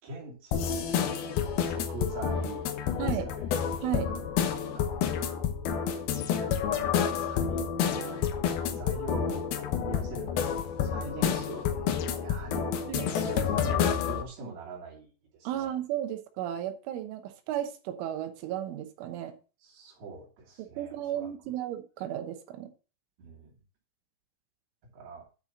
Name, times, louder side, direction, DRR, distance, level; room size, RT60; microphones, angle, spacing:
voice 1, 0.0-1.3 1.6-2.7 3.0-3.5 3.9-4.2 4.7-5.3 7.0-8.2 8.8-15.1 15.4-15.7 19.6-21.5 23.2-23.5 24.9-25.2, right 3 dB, 55° right, -3 dB, 4.5 m, -43 dB
sound 1, 0.5-14.2, left 8 dB, 80° left, 2.2 m, -29 dB
voice 2, 3.0-3.3 3.8-4.1 12.9-13.1 15.4-19.3 20.6-22.7, right 11 dB, 80° right, 7 dB, 3.4 m, -34 dB
10.0 x 6.1 x 3.8 m, 0.34 s
omnidirectional pair, 5.7 m